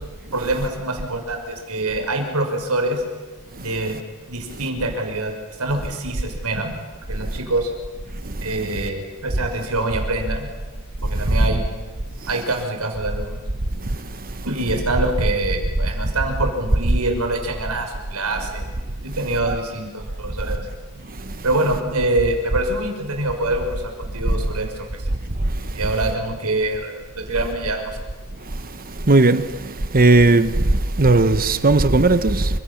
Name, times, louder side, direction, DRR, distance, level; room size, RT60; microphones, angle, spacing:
voice 1, 0.3-3.0 3.6-4.0 4.3-5.3 5.6-6.7 7.1-7.7 8.4-10.5 11.0-11.6 12.3-13.4 14.4-18.6 19.0-20.7 21.4-25.1 25.7-28.0, right 2 dB, 85° right, 6.1 m, -25 dB
voice 2, 29.1-29.4 29.9-30.5 31.0-32.5, right 2 dB, 40° right, 1.2 m, -15 dB
29.0 x 26.5 x 7.3 m
head